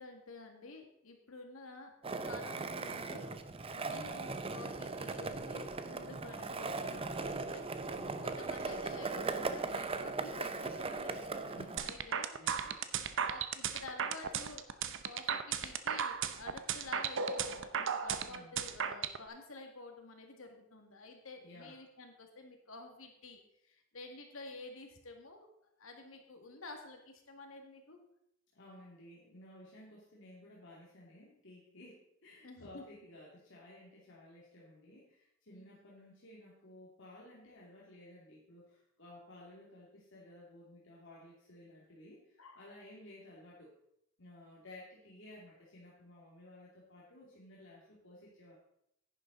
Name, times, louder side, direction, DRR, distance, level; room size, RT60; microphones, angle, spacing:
voice 1, 0.0-1.9 2.2-3.3 3.7-7.9 8.2-12.3 13.2-23.4 23.6-25.5 25.8-28.0 32.4-32.8 35.5-35.8 42.4-42.6, left 2 dB, 85° left, 4 dB, 2.0 m, -50 dB
Skateboard, 2.0-11.8, right 3 dB, 30° right, 0.7 m, -39 dB
voice 2, 7.9-8.3 11.4-12.9 18.3-18.6 21.4-21.7 28.5-43.7 44.2-48.6, left 1 dB, 65° left, -5 dB, 2.6 m, -55 dB
sound 1, 11.8-19.2, right 7 dB, 65° right, 0.8 m, -35 dB
10.5 x 10.0 x 3.9 m, 0.76 s
head